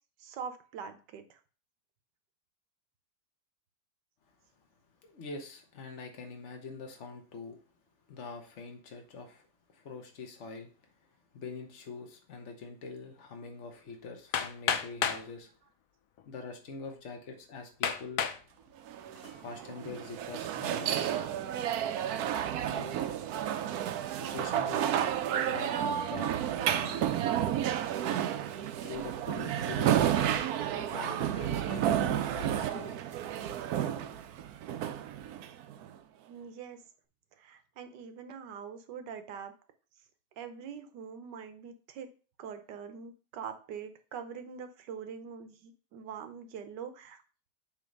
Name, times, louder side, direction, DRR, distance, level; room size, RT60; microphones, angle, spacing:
voice 1, 0.2-1.4 36.3-36.8 37.4-39.5 40.4-42.1 42.4-47.2, right 7 dB, 85° right, 8 dB, 1.5 m, -43 dB
voice 2, 5.0-7.6 8.1-10.7 11.3-15.5 16.2-18.3 19.4-21.1 22.6-22.9 24.2-25.0 25.4-26.4 26.7-27.1 28.8-30.4 30.8-33.0, left 4 dB, 45° left, 3 dB, 1.4 m, -44 dB
Hammer, 14.3-15.3 16.2-16.3 16.9-17.0 17.8-18.4 19.0-19.4, left 8 dB, 65° left, 0.9 m, -31 dB
sound 1, 18.9-35.9, right 10 dB, 70° right, 1.0 m, -31 dB
7.5 x 3.1 x 5.2 m, 0.37 s
omnidirectional pair, 1.8 m